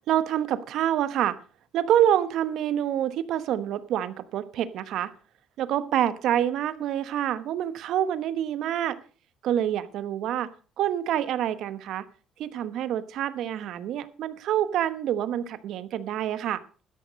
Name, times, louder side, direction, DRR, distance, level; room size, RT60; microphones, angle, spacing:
voice 1, 0.1-1.4 1.7-5.1 5.6-9.0 9.4-10.5 10.8-12.0 12.4-16.6, right 11 dB, 75° right, 14 dB, 1.1 m, -27 dB
12.5 x 10.5 x 5.3 m, 0.38 s
supercardioid pair, 80°, 0 cm